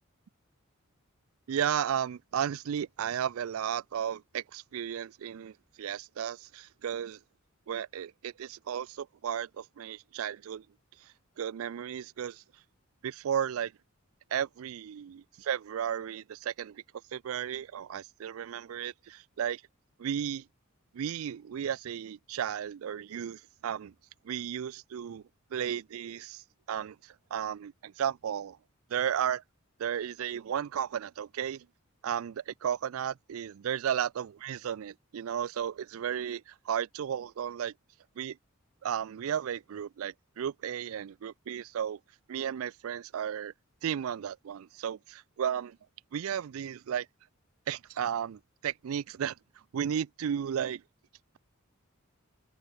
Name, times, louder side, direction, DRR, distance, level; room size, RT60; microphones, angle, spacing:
voice 1, 1.5-7.2 7.7-10.6 11.4-12.4 13.0-13.7 14.3-16.8 17.1-19.6 20.0-20.4 20.9-23.9 24.2-25.2 25.5-26.4 26.7-28.6 28.9-29.4 29.8-31.6 32.0-37.7 38.2-38.3 38.8-42.0 42.3-43.5 43.8-45.8 46.1-47.1 47.7-49.3 49.7-50.8, right 9 dB, 75° right, 0.4 m, -34 dB
open air
head